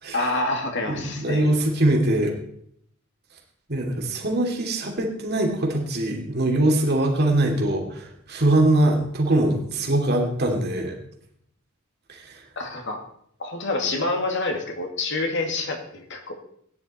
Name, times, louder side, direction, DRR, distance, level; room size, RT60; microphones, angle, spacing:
voice 1, 0.1-1.5 12.6-13.0 13.4-16.3, left 2 dB, 60° left, 4 dB, 2.2 m, -27 dB
voice 2, 0.9-2.3 3.7-10.9 12.2-12.3, right 1 dB, 50° right, 1 dB, 2.7 m, -22 dB
16.0 x 10.0 x 4.3 m, 0.68 s
head